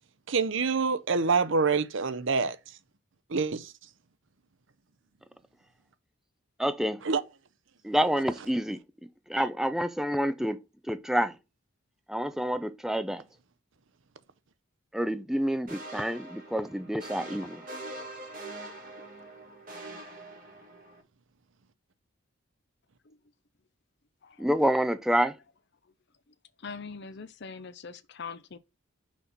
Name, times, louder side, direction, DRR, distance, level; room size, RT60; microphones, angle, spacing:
voice 1, 0.3-2.6 3.3-3.7 7.0-7.2, right 4 dB, 60° right, 0.7 m, -26 dB
voice 2, 6.6-7.0 7.8-8.8 9.3-10.6 10.9-11.4 12.1-13.2 14.9-17.7 24.4-25.4, equal, ahead, 0.5 m, -28 dB
sound 1, 15.7-21.0, right 2 dB, 40° right, 3.1 m, -43 dB
voice 3, 26.6-28.6, left 5 dB, 50° left, 0.6 m, -42 dB
6.1 x 4.3 x 5.4 m
head